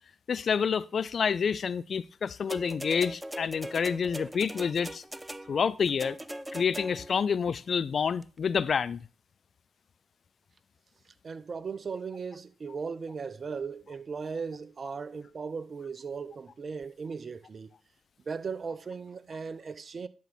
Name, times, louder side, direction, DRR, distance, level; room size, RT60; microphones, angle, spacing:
voice 1, 0.3-5.0 5.5-6.2 6.5-9.0, left 6 dB, 55° left, 0.4 m, -28 dB
sound 1, 2.5-7.2 8.2-8.3, right 1 dB, 10° right, 0.6 m, -40 dB
voice 2, 11.2-17.7 18.3-20.1, right 5 dB, 50° right, 0.7 m, -37 dB
10.5 x 5.9 x 4.1 m
hypercardioid pair, 40°, 0 cm